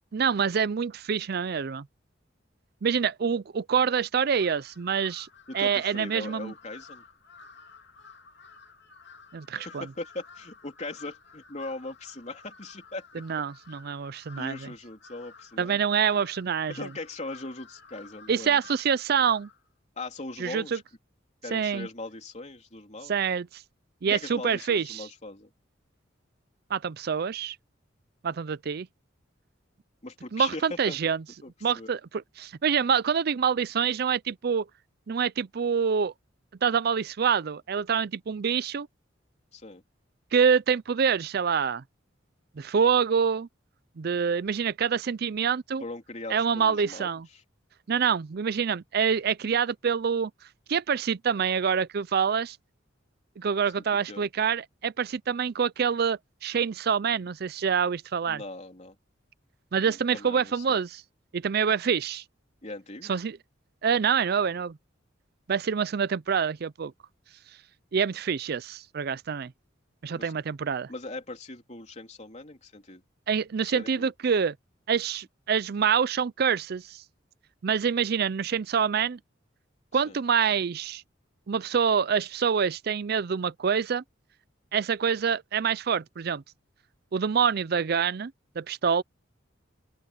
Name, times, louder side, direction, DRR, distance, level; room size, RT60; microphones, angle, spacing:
voice 1, 0.1-1.9 2.8-5.3 5.5-6.5 9.3-9.9 13.1-14.6 15.6-16.9 18.3-19.5 20.4-20.8 21.5-21.9 23.1-23.6 24.0-25.0 26.7-27.6 28.2-28.9 30.3-31.2 31.6-34.7 35.1-36.1 36.6-38.9 40.3-41.8 42.6-43.5 44.0-45.8 46.3-47.3 47.9-50.3 50.7-52.6 53.4-58.4 59.7-61.0 61.3-62.2 63.1-63.4 63.8-64.8 65.5-66.9 67.9-69.5 70.0-70.9 73.3-74.5 74.9-77.0 77.6-79.2 79.9-81.0 81.5-84.0 84.7-86.4 87.1-89.0, right 6 dB, 55° right, 0.4 m, -26 dB
Crow, 4.3-19.7, left 4 dB, 60° left, 2.7 m, -52 dB
voice 2, 5.5-7.0 9.5-13.2 14.4-15.9 16.7-18.6 19.9-20.8 21.4-23.2 24.1-25.5 30.0-31.0 31.4-31.9 39.5-39.8 45.8-47.1 53.8-54.3 58.3-58.9 59.8-60.8 62.6-63.1 70.1-70.3 70.9-73.0 73.6-74.1 79.9-80.2, left 2 dB, 35° left, 3.5 m, -40 dB
open air
head